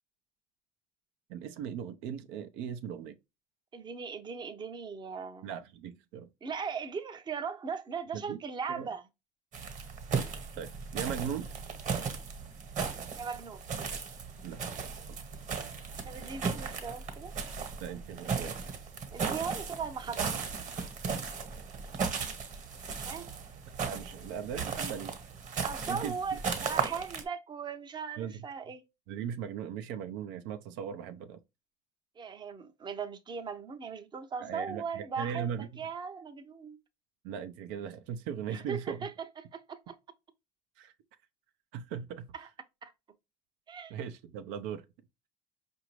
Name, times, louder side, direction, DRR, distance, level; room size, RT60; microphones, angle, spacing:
voice 1, 1.3-3.2 5.4-6.3 8.1-8.4 8.7-8.9 10.6-11.5 14.4-14.6 15.1-15.2 17.8-18.5 23.8-25.1 25.9-26.4 28.2-28.3 29.1-31.4 34.4-35.7 37.2-39.0 40.8-40.9 41.7-42.3 43.9-44.8, right 8 dB, 75° right, 0.6 m, -38 dB
voice 2, 3.7-5.5 6.4-9.0 13.2-13.6 16.0-17.3 19.1-20.3 23.0-23.3 25.6-28.8 32.2-36.8 38.5-40.0 42.3-42.5 42.8-42.9 43.7-43.9, right 6 dB, 25° right, 0.6 m, -38 dB
sound 1, 9.5-27.2, right 5 dB, 40° right, 1.2 m, -36 dB
5.0 x 2.6 x 3.0 m
supercardioid pair, 100°, 19 cm